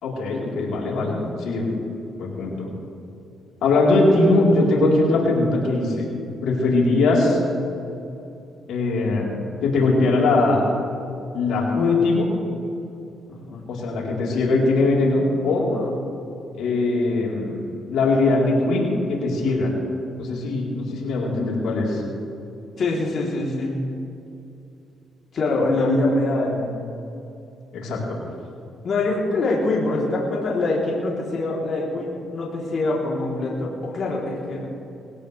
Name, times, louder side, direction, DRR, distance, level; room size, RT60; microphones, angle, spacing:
voice 1, 0.0-1.7 2.2-2.7 3.6-6.0 6.4-7.4 8.7-9.3 9.6-10.6 11.3-12.3 13.7-15.7 16.5-17.6 17.9-19.7 20.2-22.0 27.7-28.2, left 2 dB, 80° left, -4 dB, 4.0 m, -21 dB
voice 2, 13.3-13.6 15.7-15.9 22.8-23.8 25.3-26.7 28.8-34.7, left 2 dB, 55° left, -4 dB, 3.5 m, -24 dB
21.0 x 18.0 x 3.4 m, 2.8 s
cardioid pair, 90°, 0 cm